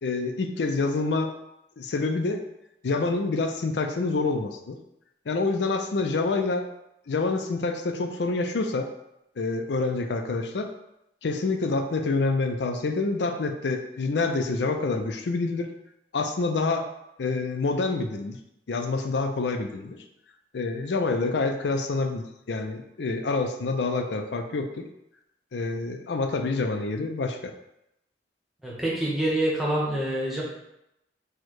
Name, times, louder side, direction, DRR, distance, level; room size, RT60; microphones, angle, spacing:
voice 1, 0.0-1.3 1.8-2.4 2.8-4.8 5.3-6.7 7.1-8.9 9.4-10.7 11.2-15.7 16.1-16.9 17.2-18.4 18.7-20.0 20.5-24.7 25.5-27.5, left 3 dB, 75° left, 6 dB, 0.5 m, -27 dB
voice 2, 28.6-30.4, right 1 dB, ahead, -5 dB, 0.9 m, -26 dB
4.5 x 2.2 x 4.6 m, 0.84 s
head